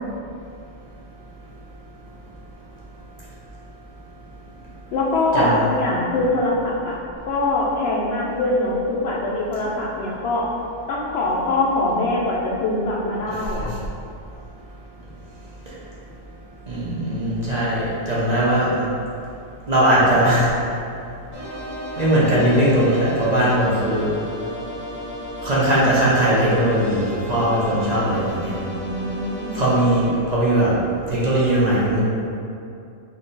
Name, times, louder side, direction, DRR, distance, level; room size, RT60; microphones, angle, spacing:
voice 1, 4.9-7.0 7.3-10.5 10.9-13.7 28.8-29.7, left 2 dB, 65° left, -4 dB, 0.7 m, -23 dB
voice 2, 16.7-18.9 19.7-20.5 22.0-24.1 25.4-28.6 29.5-30.8 31.1-32.0, right 1 dB, 40° right, -8 dB, 0.7 m, -19 dB
sound 1, 21.3-30.0, equal, 70° right, 1.7 m, -33 dB
3.6 x 2.7 x 3.9 m, 2.5 s
omnidirectional pair, 1.3 m